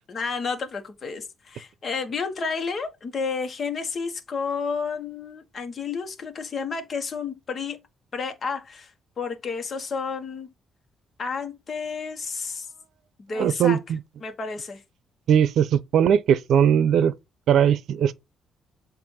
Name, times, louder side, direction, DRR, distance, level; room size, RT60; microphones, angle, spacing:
voice 1, 0.0-7.8 8.1-8.9 9.2-10.5 11.2-12.7 13.2-13.8 14.2-14.8, left 5 dB, 45° left, 1.3 m, -31 dB
voice 2, 13.4-14.0 15.3-17.1 17.5-18.1, right 8 dB, 70° right, 0.6 m, -19 dB
7.6 x 2.6 x 5.4 m
cardioid pair, 90°, 0 cm